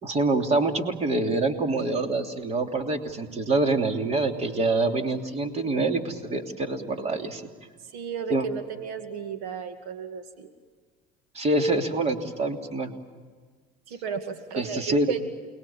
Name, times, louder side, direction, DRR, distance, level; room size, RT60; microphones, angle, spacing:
voice 1, 0.0-7.4 8.3-8.4 11.3-12.9 14.6-15.1, right 2 dB, 35° right, 4 dB, 3.1 m, -26 dB
voice 2, 7.8-10.5 13.9-15.3, right 6 dB, 85° right, 7 dB, 2.3 m, -34 dB
29.5 x 21.5 x 7.3 m, 1.5 s
supercardioid pair, 105°, 19 cm